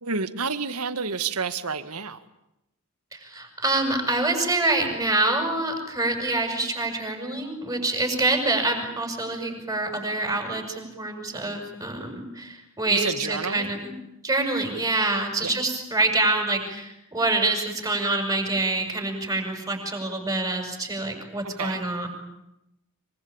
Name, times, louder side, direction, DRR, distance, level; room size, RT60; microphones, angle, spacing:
voice 1, 0.0-2.2 12.9-13.7 15.4-15.5 21.6-21.8, right 5 dB, 75° right, 11 dB, 2.0 m, -29 dB
voice 2, 3.1-13.9 14.2-22.1, right 2 dB, 15° right, 4 dB, 7.4 m, -26 dB
26.0 x 24.0 x 8.9 m, 0.86 s
head